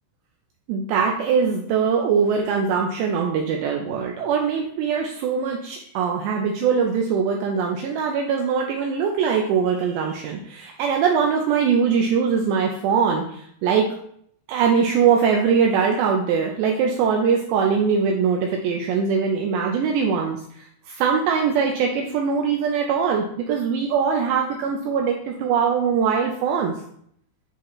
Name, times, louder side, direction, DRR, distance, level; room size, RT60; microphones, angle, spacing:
voice 1, 0.7-13.9 14.5-20.4 20.9-26.7, right 6 dB, 80° right, 1 dB, 2.6 m, -22 dB
10.0 x 4.1 x 3.1 m, 0.67 s
omnidirectional pair, 5.6 m